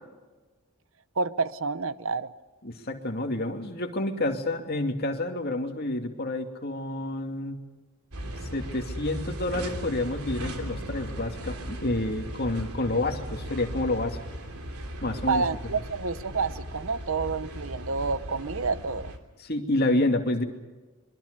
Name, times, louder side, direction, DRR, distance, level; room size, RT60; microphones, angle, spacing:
voice 1, 1.2-2.3 15.3-19.1, right 4 dB, 65° right, 15 dB, 0.9 m, -29 dB
voice 2, 2.6-7.6 8.5-14.2 15.0-15.4 19.4-20.4, left 2 dB, 45° left, 4 dB, 2.6 m, -29 dB
sound 1, 8.1-19.2, right 1 dB, 90° right, 3.1 m, -37 dB
24.5 x 23.0 x 6.8 m, 1.2 s
head